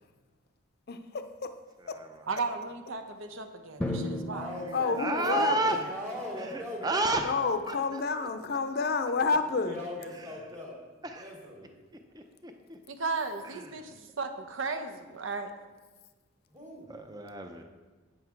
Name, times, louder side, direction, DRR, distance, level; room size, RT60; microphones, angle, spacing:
voice 1, 0.9-1.5 1.9-2.0 4.7-5.8 7.2-9.8, left 4 dB, 50° left, 9 dB, 0.5 m, -29 dB
voice 2, 2.3-4.5 12.9-15.5, right 4 dB, 70° right, 7 dB, 0.9 m, -35 dB
Drum, 3.8-5.7, left 1 dB, 5° left, 0.9 m, -36 dB
voice 3, 4.3-7.1 9.2-10.8 11.2-11.8 16.5-16.9, left 1 dB, 35° right, -3 dB, 1.8 m, -40 dB
voice 4, 5.0-5.8 6.4-7.4 7.7-8.3 11.1-11.3 12.1-12.8 13.5-13.8 16.9-17.6, right 2 dB, 20° right, 5 dB, 0.6 m, -32 dB
8.5 x 8.0 x 4.6 m, 1.3 s
head